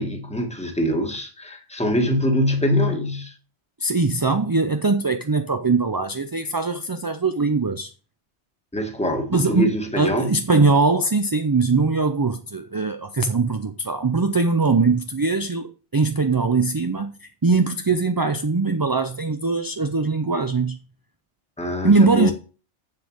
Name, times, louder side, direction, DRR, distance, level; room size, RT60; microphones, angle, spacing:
voice 1, 0.0-3.3 8.7-10.3 21.6-22.3, left 1 dB, 5° left, 1.8 m, -24 dB
voice 2, 3.8-7.9 9.3-9.7 10.0-20.8 21.8-22.3, right 3 dB, 30° right, 0.4 m, -21 dB
7.6 x 7.3 x 6.4 m
omnidirectional pair, 1.2 m